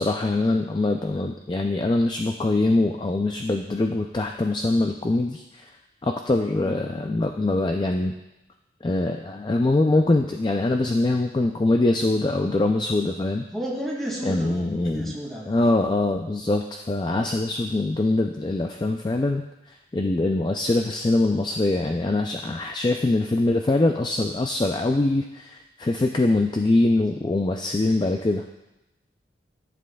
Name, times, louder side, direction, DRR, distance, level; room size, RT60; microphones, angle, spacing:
voice 1, 0.0-5.7 6.0-8.1 8.8-13.4 14.2-15.1 15.5-28.4, left 2 dB, 25° left, 3 dB, 0.3 m, -23 dB
voice 2, 13.5-15.6, right 1 dB, ahead, -4 dB, 2.1 m, -32 dB
14.5 x 7.5 x 2.3 m, 0.95 s
head